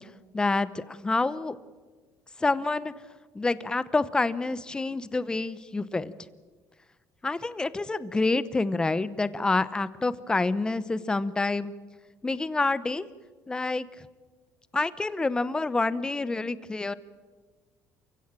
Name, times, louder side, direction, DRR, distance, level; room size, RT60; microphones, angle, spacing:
voice 1, 0.3-1.6 2.4-2.9 3.3-6.1 7.2-11.7 12.2-13.1 13.5-13.9 14.7-16.9, left 3 dB, 15° left, 16 dB, 0.8 m, -27 dB
29.0 x 16.0 x 9.0 m, 1.4 s
cardioid pair, 150°, 6 cm